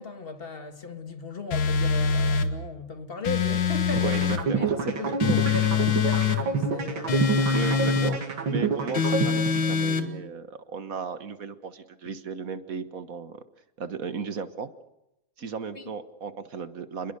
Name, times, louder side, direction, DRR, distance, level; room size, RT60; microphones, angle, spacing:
voice 1, 0.0-4.1 4.6-7.3 15.8-15.9, left 3 dB, 30° left, 1.8 m, -37 dB
sound 1, 1.5-2.5 3.2-4.4 5.2-6.4 7.1-8.2 8.9-10.1, left 6 dB, 80° left, 2.5 m, -24 dB
voice 2, 3.9-5.3 7.5-8.2 8.5-13.4 13.8-14.7 15.4-17.1, right 5 dB, 50° right, 1.6 m, -35 dB
sound 2, 4.0-10.0, right 4 dB, 90° right, 3.1 m, -28 dB
29.5 x 21.5 x 6.7 m
omnidirectional pair, 2.0 m